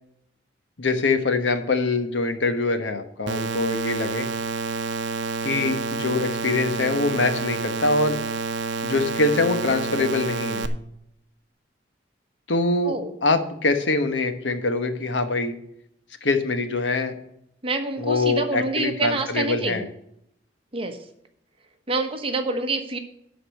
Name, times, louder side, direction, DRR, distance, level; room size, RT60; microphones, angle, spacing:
voice 1, 0.8-4.3 5.4-8.2 8.8-10.7 12.5-15.5 16.2-17.2 18.0-19.8, left 3 dB, 80° left, 8 dB, 1.1 m, -24 dB
sound 1, 3.3-10.7, right 4 dB, 75° right, 0.7 m, -29 dB
voice 2, 17.6-19.8 20.7-21.0 21.9-23.0, right 3 dB, 30° right, 6 dB, 1.1 m, -27 dB
11.5 x 4.2 x 8.0 m, 0.75 s
head